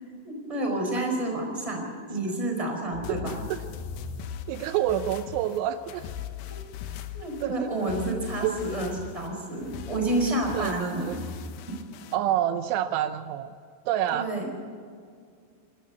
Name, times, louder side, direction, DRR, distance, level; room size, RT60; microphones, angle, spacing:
voice 1, 0.2-3.4 7.1-11.2 14.1-14.5, right 2 dB, 5° right, 2 dB, 4.1 m, -29 dB
sound 1, 2.9-12.2, left 7 dB, 85° left, 2.1 m, -39 dB
voice 2, 4.5-6.1 7.4-7.7 8.4-8.5 10.5-11.2 12.1-13.5 13.9-14.3, right 11 dB, 85° right, 10 dB, 3.0 m, -27 dB
27.5 x 13.0 x 8.2 m, 2.2 s
omnidirectional pair, 5.6 m